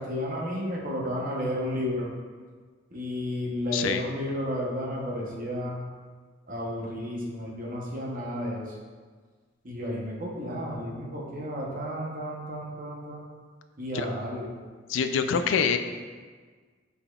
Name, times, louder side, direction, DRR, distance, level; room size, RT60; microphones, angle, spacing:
voice 1, 0.0-2.1 2.9-5.9 6.5-8.8 9.6-13.2 13.8-14.5, equal, 45° right, -2 dB, 0.9 m, -32 dB
voice 2, 3.7-4.0 13.9-14.1 14.9-15.8, left 6 dB, 85° left, 8 dB, 0.3 m, -25 dB
5.5 x 4.1 x 2.3 m, 1.5 s
head